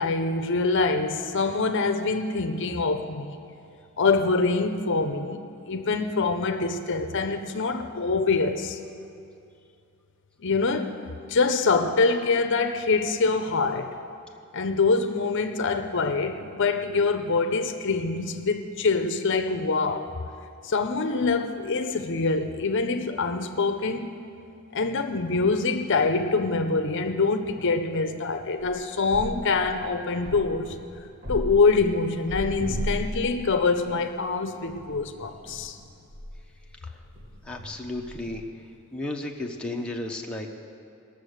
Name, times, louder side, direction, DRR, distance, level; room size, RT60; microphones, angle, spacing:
voice 1, 0.0-3.4 4.0-8.8 10.4-11.0 11.3-14.0 14.5-20.1 20.6-24.2 24.7-30.8 31.3-35.8, left 4 dB, 55° left, 7 dB, 0.6 m, -25 dB
sound 1, 28.6-29.9 30.2-34.2 34.6-36.7 37.0-38.4, equal, 40° right, 1.3 m, -37 dB
voice 2, 37.4-38.4 38.9-40.5, left 2 dB, 5° left, -1 dB, 0.8 m, -33 dB
19.0 x 6.9 x 6.5 m, 2.5 s
head